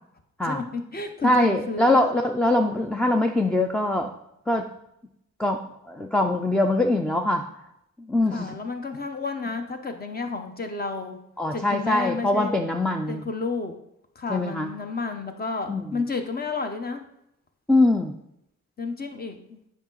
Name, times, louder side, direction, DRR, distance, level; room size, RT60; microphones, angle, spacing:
voice 1, 0.4-2.0 8.3-11.2 11.5-12.5 13.1-13.7 14.2-17.0 18.8-19.6, left 4 dB, 30° left, 6 dB, 0.8 m, -31 dB
voice 2, 1.2-4.1 4.5-4.7 5.4-5.6 5.9-7.5 8.1-8.5 11.4-13.2 14.3-14.7 15.7-16.0 17.7-18.1, left 1 dB, 5° left, 4 dB, 0.3 m, -22 dB
9.9 x 5.0 x 3.8 m, 0.80 s
wide cardioid pair, 170°, 31 cm